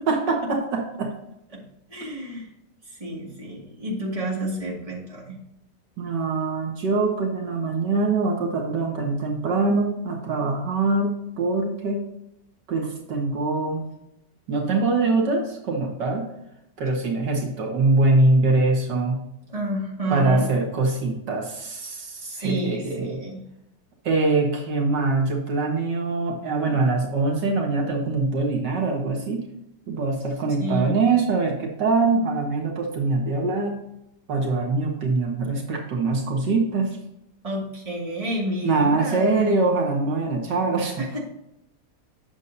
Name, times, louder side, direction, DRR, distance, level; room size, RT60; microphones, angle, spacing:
voice 1, 0.1-1.1 6.0-12.1 12.7-13.9 14.5-16.3 16.8-19.2 20.1-23.2 24.0-29.4 29.9-33.8 34.3-37.0 38.6-41.0, right 3 dB, 80° right, 1 dB, 2.1 m, -23 dB
voice 2, 1.9-2.5 2.9-5.4 19.5-20.5 22.2-23.4 30.6-31.0 37.4-39.6 41.0-41.3, right 1 dB, 20° right, -4 dB, 2.1 m, -30 dB
8.4 x 7.0 x 2.7 m, 0.82 s
omnidirectional pair, 1.9 m